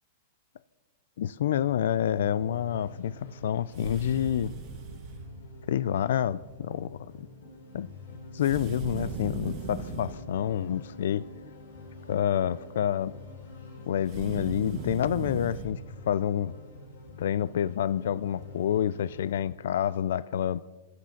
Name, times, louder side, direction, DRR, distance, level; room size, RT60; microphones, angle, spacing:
voice 1, 1.2-4.5 5.7-7.0 7.7-7.9 8.3-11.3 12.1-13.1 13.9-16.5 17.2-20.6, left 10 dB, 70° left, 0.4 m, -28 dB
sound 1, 1.6-19.4, left 2 dB, 85° left, 5.3 m, -47 dB
sound 2, 3.7-5.2 8.4-10.2 14.0-15.7, right 4 dB, 25° right, 1.6 m, -38 dB
24.5 x 9.5 x 5.9 m
supercardioid pair, 175°, 0 cm